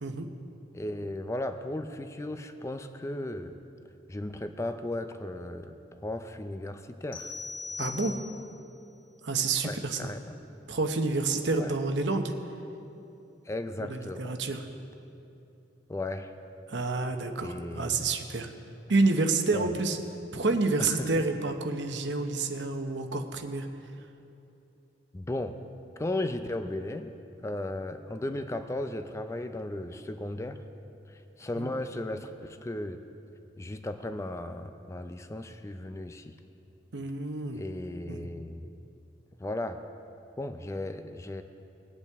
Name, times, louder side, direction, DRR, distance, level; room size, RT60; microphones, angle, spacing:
voice 1, 0.7-3.5 4.1-7.3 9.6-10.2 11.6-11.7 13.5-14.4 15.9-16.3 17.4-18.0 19.5-19.7 20.8-21.2 25.1-25.6 26.0-27.1 27.4-30.6 31.1-33.0 33.6-36.3 37.5-38.7 39.4-39.8 40.4-41.4, left 1 dB, 15° left, 8 dB, 0.4 m, -35 dB
sound 1, 7.1-8.7, left 4 dB, 55° left, 1.7 m, -39 dB
voice 2, 7.8-8.2 9.2-10.1 10.7-12.3 13.8-14.7 16.7-18.5 18.9-20.0 20.3-23.7 31.6-31.7 36.9-37.6 38.1-38.3, right 3 dB, 75° right, 6 dB, 0.9 m, -29 dB
20.5 x 8.3 x 3.5 m, 2.7 s
head